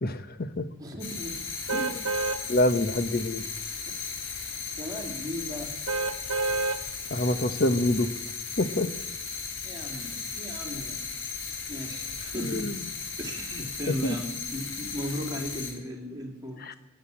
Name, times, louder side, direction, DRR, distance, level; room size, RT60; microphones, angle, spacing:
voice 1, 0.0-0.7 1.7-2.1 2.5-3.5 7.1-8.1 8.6-8.9 12.4-12.9 13.9-14.2 16.6-16.7, left 1 dB, 50° left, 11 dB, 1.0 m, -27 dB
voice 2, 0.8-1.5 3.9-4.1 4.7-5.8 9.6-11.0 11.7-12.8 13.2-16.6, equal, 20° right, 0 dB, 2.9 m, -36 dB
sound 1, 1.0-15.7, left 5 dB, 70° left, 3.4 m, -36 dB
sound 2, 1.7-2.4 2.9-3.1 5.9-6.8 7.4-7.5, right 3 dB, 70° right, 1.3 m, -28 dB
15.5 x 10.5 x 8.6 m, 0.94 s
head